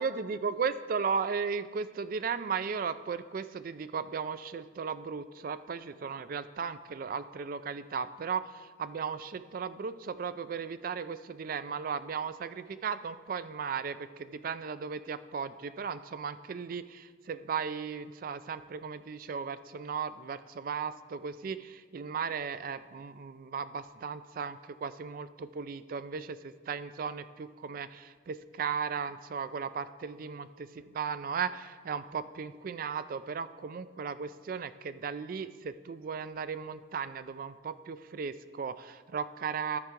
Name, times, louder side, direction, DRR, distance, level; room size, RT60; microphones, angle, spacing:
voice 1, 0.0-39.8, right 6 dB, 50° right, 13 dB, 0.4 m, -36 dB
12.5 x 4.6 x 5.1 m, 1.5 s
head